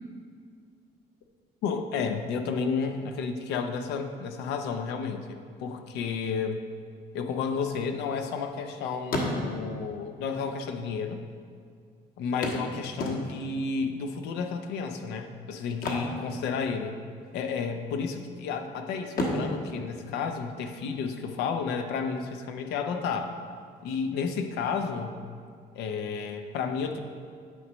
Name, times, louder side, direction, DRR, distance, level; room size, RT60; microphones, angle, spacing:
voice 1, 1.6-6.6 7.1-11.2 12.2-17.0 17.3-23.4 23.8-25.2 25.7-27.0, left 5 dB, 85° left, 6 dB, 0.6 m, -31 dB
sound 1, 7.4-8.7 9.0-9.8 10.8-10.9 11.1-11.2 12.4-13.6 15.7-17.0 17.2-17.5 18.0-18.6 19.1-20.8 22.8-22.9 23.4-23.5, left 1 dB, 60° left, 1.2 m, -33 dB
9.2 x 3.1 x 6.1 m, 2.2 s
cardioid pair, 110°, 17 cm